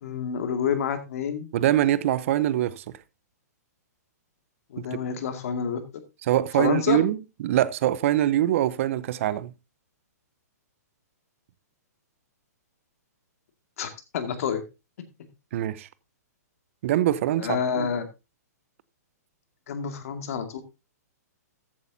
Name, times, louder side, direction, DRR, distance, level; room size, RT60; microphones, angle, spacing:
voice 1, 0.0-1.5 4.7-5.8 6.6-7.0 13.8-14.6 17.4-18.0 19.7-20.6, left 7 dB, 60° left, 2.1 m, -28 dB
voice 2, 1.5-2.8 4.8-5.0 6.3-7.2 7.4-9.5 15.5-15.9 16.8-17.9, right 12 dB, 50° right, 0.7 m, -24 dB
13.5 x 8.6 x 2.7 m
hypercardioid pair, 145°, 9 cm